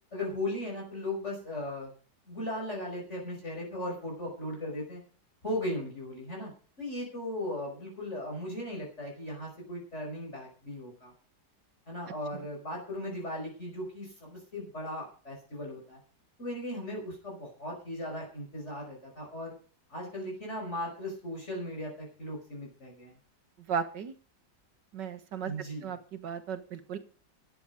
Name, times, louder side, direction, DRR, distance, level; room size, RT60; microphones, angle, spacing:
voice 1, 0.1-1.9 2.3-5.0 5.4-6.5 6.8-11.1 11.9-16.0 16.4-19.5 19.9-23.2 25.4-26.0, left 1 dB, 40° left, -2 dB, 5.7 m, -37 dB
voice 2, 23.7-24.1 24.9-25.5 25.8-27.0, right 7 dB, 80° right, 10 dB, 2.1 m, -35 dB
14.0 x 10.5 x 5.1 m, 0.40 s
omnidirectional pair, 1.8 m